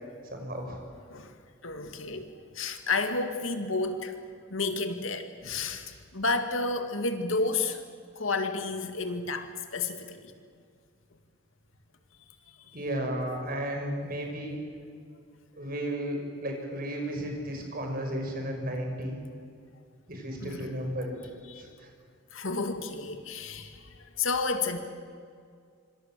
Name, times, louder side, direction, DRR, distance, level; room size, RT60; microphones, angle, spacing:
voice 1, 0.3-0.8 12.7-14.7 15.6-19.2 20.1-21.1 21.6-21.9, right 1 dB, 45° right, 2 dB, 6.1 m, -34 dB
voice 2, 1.6-7.8 8.1-10.3 12.7-12.8 20.4-20.6 21.5-21.6 22.3-24.8, left 3 dB, 75° left, 7 dB, 2.4 m, -31 dB
25.5 x 25.5 x 7.7 m, 2.2 s
head